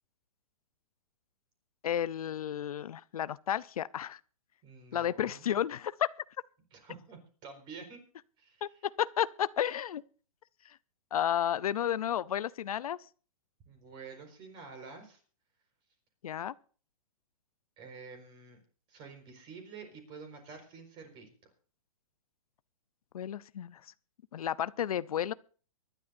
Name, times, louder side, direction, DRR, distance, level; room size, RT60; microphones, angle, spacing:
voice 1, 1.8-4.2 4.9-6.1 8.6-10.0 11.1-13.0 16.2-16.5 23.1-23.8 24.3-25.3, left 10 dB, 80° left, 0.6 m, -32 dB
voice 2, 4.6-5.5 6.7-8.0 8.4-8.6 13.6-15.2 17.8-18.6 18.9-21.3, right 5 dB, 25° right, 4.6 m, -49 dB
24.0 x 11.5 x 2.6 m
hypercardioid pair, 160°, 18 cm